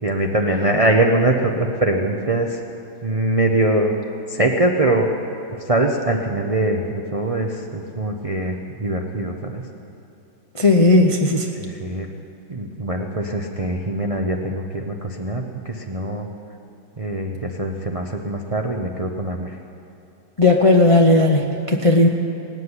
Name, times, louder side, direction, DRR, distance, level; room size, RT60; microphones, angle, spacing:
voice 1, 0.0-2.6 3.0-3.9 4.3-5.1 5.6-9.7 11.5-12.1 12.5-16.3 17.0-19.6, right 1 dB, 55° right, 1 dB, 0.3 m, -22 dB
voice 2, 10.6-11.5 20.4-22.1, left 2 dB, 40° left, 2 dB, 0.4 m, -15 dB
18.5 x 7.5 x 9.7 m, 2.7 s
omnidirectional pair, 2.0 m